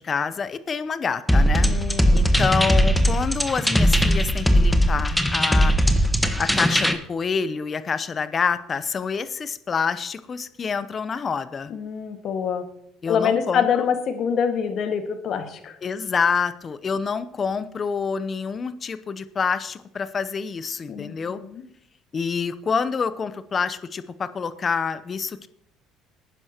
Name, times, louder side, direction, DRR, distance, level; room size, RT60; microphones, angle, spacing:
voice 1, 0.0-1.7 2.1-5.7 6.0-11.7 13.0-13.7 15.8-21.4 22.1-25.5, left 5 dB, 40° left, 14 dB, 0.8 m, -27 dB
sound 1, 1.3-6.9, equal, 5° left, 1.3 m, -19 dB
voice 2, 1.6-2.3 11.7-12.7 13.1-15.8 20.9-21.6, left 7 dB, 60° left, 6 dB, 1.8 m, -26 dB
19.0 x 9.9 x 3.0 m, 0.72 s
supercardioid pair, 70°, 0 cm